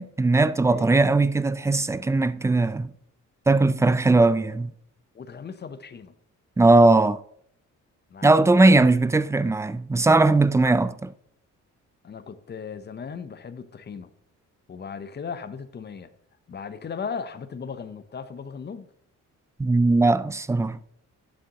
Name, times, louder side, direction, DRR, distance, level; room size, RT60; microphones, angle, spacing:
voice 1, 0.0-2.9 3.5-4.7 6.6-7.2 8.2-11.1 19.6-20.8, right 2 dB, 10° right, 0.3 m, -19 dB
voice 2, 5.1-6.1 8.1-8.8 12.0-14.1 14.7-16.1 16.5-18.9, left 6 dB, 35° left, 0.8 m, -37 dB
11.0 x 6.6 x 2.9 m
cardioid pair, 90°, 30 cm